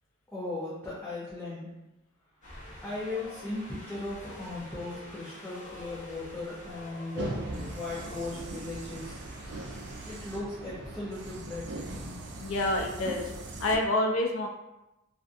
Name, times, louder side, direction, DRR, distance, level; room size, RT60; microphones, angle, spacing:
voice 1, 0.3-1.7 2.8-9.2 10.1-12.2, left 2 dB, 10° left, -9 dB, 0.5 m, -37 dB
Wind, 2.4-10.2, left 1 dB, 35° left, 0.8 m, -48 dB
sound 1, 7.2-13.8, right 2 dB, 55° right, 0.3 m, -40 dB
voice 2, 12.4-13.3 13.6-14.5, left 1 dB, 70° left, 1 dB, 0.4 m, -27 dB
2.4 x 2.4 x 2.4 m, 0.96 s
head